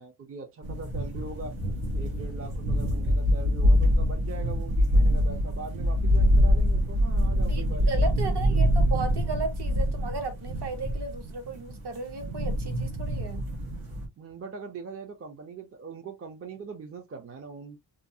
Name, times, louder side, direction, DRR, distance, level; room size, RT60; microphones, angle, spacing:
voice 1, 0.0-1.6 2.0-8.1 14.2-17.8, right 4 dB, 30° right, 0.4 m, -41 dB
sound 1, 0.6-14.1, equal, 85° right, 1.1 m, -25 dB
voice 2, 7.5-13.4, right 4 dB, 55° right, 0.9 m, -35 dB
2.6 x 2.3 x 2.6 m
wide cardioid pair, 160°, 47 cm